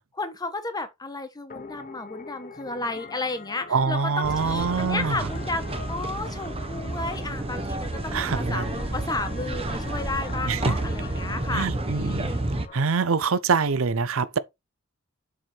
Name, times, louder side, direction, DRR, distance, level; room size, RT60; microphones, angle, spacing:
voice 1, 0.1-12.4, left 2 dB, 20° left, 1.1 m, -33 dB
sound 1, 1.5-12.8, left 4 dB, 40° left, 0.8 m, -42 dB
voice 2, 3.7-5.3 8.1-8.7 10.5-10.8 11.5-12.3 12.7-14.4, right 5 dB, 70° right, 0.6 m, -25 dB
sound 2, 4.2-12.7, right 2 dB, 25° right, 0.9 m, -31 dB
7.4 x 4.7 x 4.4 m
head